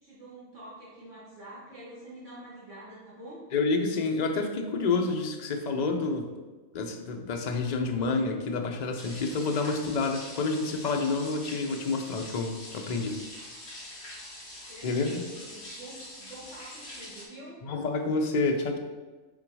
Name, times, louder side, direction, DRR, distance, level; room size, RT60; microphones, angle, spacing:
voice 1, 0.0-3.4 14.3-17.6, right 1 dB, 60° right, -9 dB, 1.9 m, -47 dB
voice 2, 3.5-6.3 6.7-13.2 14.8-15.2 17.6-18.8, left 3 dB, 45° left, 4 dB, 0.5 m, -28 dB
sound 1, 9.0-17.2, left 1 dB, 80° left, 2.4 m, -44 dB
6.1 x 4.0 x 4.7 m, 1.3 s
omnidirectional pair, 1.5 m